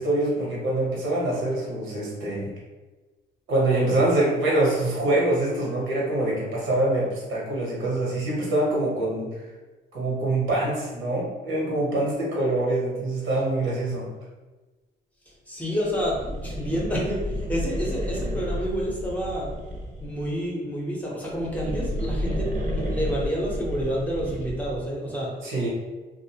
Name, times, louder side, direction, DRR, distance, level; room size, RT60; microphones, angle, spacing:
voice 1, 0.0-2.5 3.5-9.3 9.9-14.1 25.4-25.7, right 2 dB, 80° right, -4 dB, 1.0 m, -25 dB
voice 2, 15.3-19.5 20.0-25.3, equal, 5° left, -5 dB, 0.7 m, -29 dB
sound 1, 15.9-20.3 21.2-24.9, equal, 40° right, 0.7 m, -31 dB
2.5 x 2.0 x 2.8 m, 1.2 s
cardioid pair, 90°, 20 cm